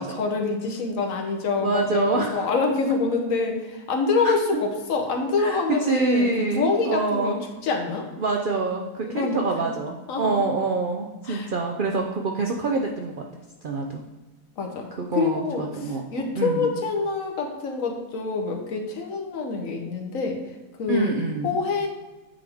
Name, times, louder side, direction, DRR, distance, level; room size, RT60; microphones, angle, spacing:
voice 1, 0.0-6.3 6.5-7.4 7.6-8.1 9.0-9.4 10.1-10.4 11.3-11.5 14.6-20.4 20.8-21.1 21.4-21.9, left 4 dB, 65° left, 2 dB, 1.2 m, -26 dB
voice 2, 1.6-2.5 4.2-4.3 5.4-7.5 8.2-13.3 13.6-14.0 14.9-16.7 20.9-21.6, right 3 dB, 80° right, 2 dB, 0.4 m, -26 dB
8.8 x 3.4 x 3.4 m, 1.2 s
omnidirectional pair, 1.6 m